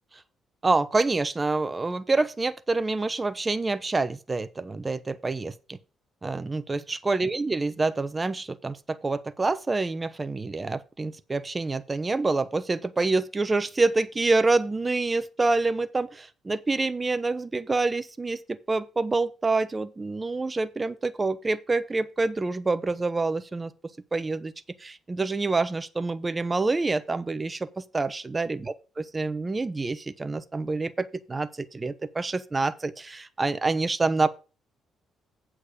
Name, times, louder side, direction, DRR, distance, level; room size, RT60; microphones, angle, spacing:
voice 1, 0.6-5.8 6.2-23.7 24.1-24.5 24.8-28.6 29.1-34.3, right 3 dB, 25° right, 0.9 m, -27 dB
8.5 x 7.5 x 5.1 m
cardioid pair, 90°, 0 cm